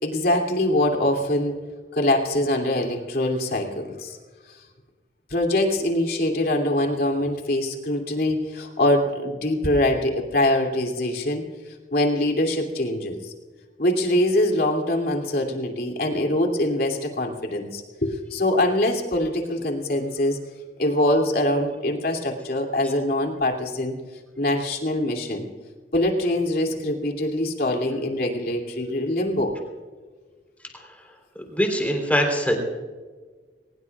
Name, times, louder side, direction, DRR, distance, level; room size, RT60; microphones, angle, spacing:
voice 1, 0.0-1.6 1.9-4.2 5.3-11.4 11.9-13.3 13.8-20.4 20.8-24.0 24.4-25.5 25.9-29.6, left 1 dB, 60° left, 3 dB, 2.8 m, -23 dB
voice 2, 30.7-31.1 31.4-32.5, equal, 10° left, 2 dB, 3.6 m, -23 dB
22.5 x 20.0 x 2.4 m, 1.4 s
head